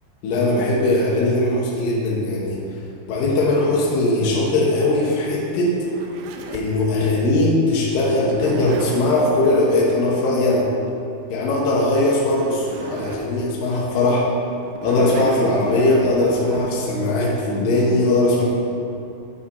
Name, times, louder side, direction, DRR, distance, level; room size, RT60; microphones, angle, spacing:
voice 1, 0.2-2.6 3.1-5.9 6.5-10.7 11.3-14.3 14.8-18.4, left 2 dB, 70° left, -4 dB, 2.3 m, -19 dB
Zipper (clothing), 4.1-6.8 8.1-9.4 12.0-12.1 12.3-13.3 13.8-13.9 14.6-16.6, right 4 dB, 90° right, 2.9 m, -32 dB
8.2 x 4.9 x 4.2 m, 2.7 s
omnidirectional pair, 5.0 m